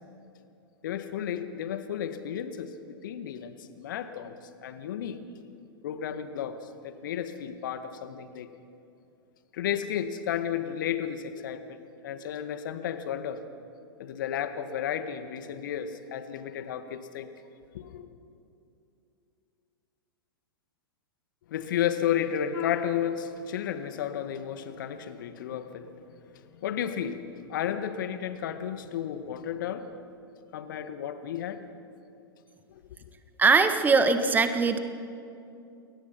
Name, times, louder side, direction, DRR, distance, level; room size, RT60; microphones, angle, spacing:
voice 1, 0.8-5.2 5.8-6.6 6.8-8.5 9.5-11.8 12.0-13.4 14.0-17.3 17.7-18.1 21.5-25.9 26.3-27.2 27.5-29.9 30.5-31.6 32.7-32.8, left 9 dB, 55° left, 10 dB, 1.8 m, -33 dB
voice 2, 33.4-34.8, right 4 dB, 15° right, 8 dB, 1.7 m, -21 dB
29.5 x 21.5 x 5.8 m, 2.6 s
figure-of-eight pair, 100°, 13 cm